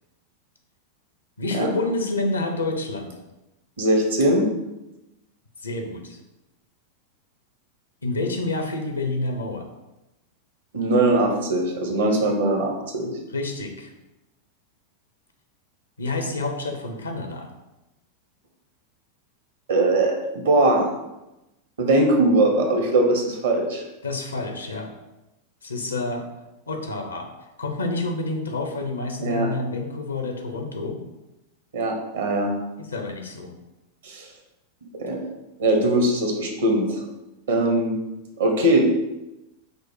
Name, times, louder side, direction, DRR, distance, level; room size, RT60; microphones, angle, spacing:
voice 1, 1.4-3.1 5.6-6.2 8.0-9.7 13.3-13.9 16.0-17.5 24.0-24.9 25.6-26.3 26.7-27.3 27.6-31.0 32.8-33.5, left 2 dB, 75° left, 4 dB, 0.6 m, -28 dB
voice 2, 3.8-4.4 10.7-13.1 19.7-20.9 21.8-23.8 29.2-29.5 31.7-32.5 34.0-34.2 35.0-35.2 35.6-37.0 37.5-38.0 38.4-38.8, right 2 dB, 65° right, 2 dB, 0.9 m, -21 dB
5.1 x 2.0 x 4.7 m, 0.97 s
figure-of-eight pair, 90°, 0 cm